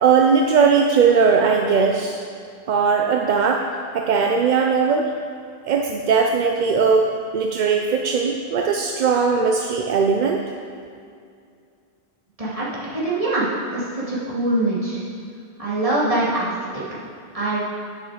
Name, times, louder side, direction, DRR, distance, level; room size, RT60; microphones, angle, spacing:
voice 1, 0.0-2.2 2.7-3.6 3.9-5.1 5.7-7.1 7.3-10.4, right 5 dB, 55° right, 2 dB, 0.6 m, -19 dB
voice 2, 12.9-13.5 13.7-15.0 15.6-16.5 17.3-17.6, right 2 dB, 35° right, -9 dB, 2.5 m, -23 dB
9.6 x 6.8 x 4.9 m, 2.4 s
omnidirectional pair, 1.1 m